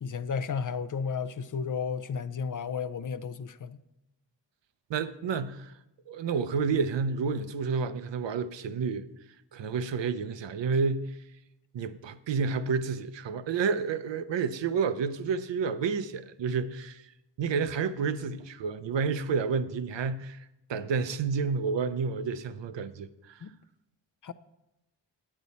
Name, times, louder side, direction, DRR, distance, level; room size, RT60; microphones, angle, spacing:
voice 1, 0.0-3.8 23.4-23.5 24.2-24.3, left 6 dB, 45° left, 0.5 m, -33 dB
voice 2, 4.9-5.7 6.1-9.1 9.5-11.1 11.7-17.0 17.4-20.4 20.7-23.4, right 5 dB, 80° right, 0.6 m, -30 dB
8.7 x 8.1 x 4.1 m
cardioid pair, 45°, 44 cm